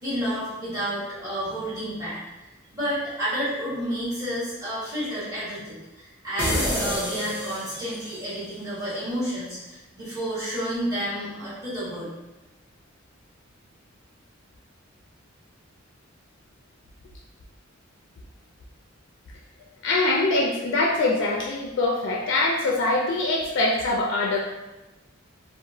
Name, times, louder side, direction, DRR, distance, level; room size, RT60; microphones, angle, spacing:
voice 1, 0.0-2.2 2.7-12.1, equal, 20° right, -14 dB, 1.4 m, -30 dB
sound 1, 6.4-8.2, equal, 10° left, 0.7 m, -28 dB
voice 2, 19.8-24.4, left 2 dB, 60° left, -2 dB, 0.3 m, -23 dB
2.8 x 2.1 x 2.6 m, 1.0 s
head